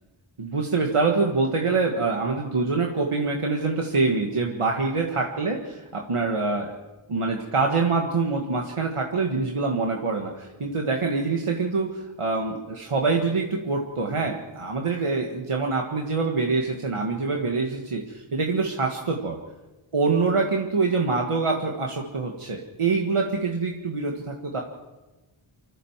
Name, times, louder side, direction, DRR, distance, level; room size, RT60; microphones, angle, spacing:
voice 1, 0.4-6.8 7.1-19.4 19.9-24.6, right 4 dB, 85° right, 1 dB, 1.9 m, -25 dB
25.0 x 14.5 x 7.4 m, 1.2 s
wide cardioid pair, 50°, 50 cm